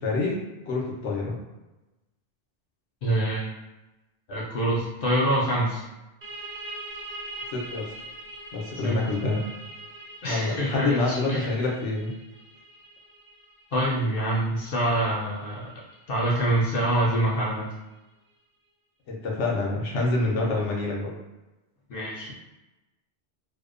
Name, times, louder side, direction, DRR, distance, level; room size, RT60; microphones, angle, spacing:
voice 1, 0.0-0.4 0.7-1.4 7.5-7.9 8.5-9.4 10.2-12.1 19.1-21.1, left 2 dB, 85° left, -2 dB, 1.0 m, -27 dB
voice 2, 3.0-3.5 4.3-5.8 8.8-9.1 10.2-11.5 13.7-15.7 16.1-17.7 21.9-22.3, right 1 dB, 60° left, -5 dB, 0.6 m, -25 dB
sound 1, 6.2-17.6, right 2 dB, 70° right, 0.8 m, -43 dB
2.6 x 2.1 x 2.4 m, 1.0 s
omnidirectional pair, 1.2 m